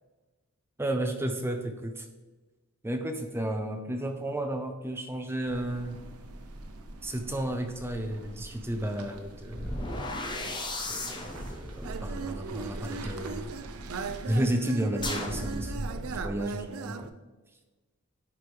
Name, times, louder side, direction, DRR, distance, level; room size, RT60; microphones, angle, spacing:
voice 1, 0.8-2.1 2.8-6.0 7.0-9.9 10.9-13.5 14.2-17.1, right 1 dB, 10° right, 5 dB, 0.5 m, -32 dB
sound 1, 5.5-14.5, right 2 dB, 85° right, 0.8 m, -45 dB
sound 2, 9.5-13.6 15.0-16.4, left 1 dB, 20° left, 1.0 m, -37 dB
sound 3, 11.8-17.1, right 5 dB, 65° right, 0.4 m, -37 dB
10.5 x 4.7 x 3.4 m, 1.2 s
head